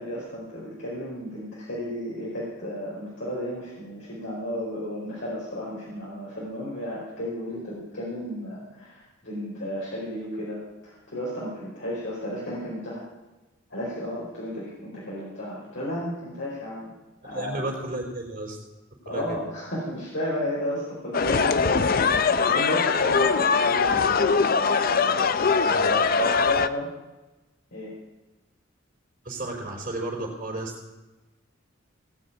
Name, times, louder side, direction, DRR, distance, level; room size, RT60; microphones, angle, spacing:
voice 1, 0.0-13.1 13.7-16.9 17.2-17.7 19.0-26.9 27.7-27.9, left 1 dB, 65° left, -6 dB, 4.5 m, -33 dB
voice 2, 17.2-18.6 19.1-19.4 25.7-25.9 29.2-31.0, right 2 dB, 35° right, -5 dB, 4.2 m, -33 dB
sound 1, 21.1-26.7, left 5 dB, 45° left, 0.6 m, -22 dB
18.5 x 6.5 x 8.8 m, 1.1 s
head